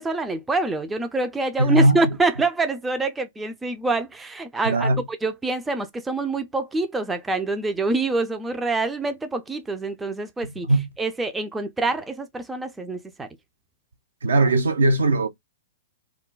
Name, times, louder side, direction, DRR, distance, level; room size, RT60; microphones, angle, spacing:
voice 1, 0.0-10.7 11.0-13.3, right 3 dB, 10° right, 0.4 m, -26 dB
voice 2, 1.6-2.1 4.6-5.0 10.7-10.9 14.2-15.3, right 2 dB, 75° right, 0.6 m, -19 dB
2.3 x 2.1 x 3.7 m
figure-of-eight pair, 110°, 0 cm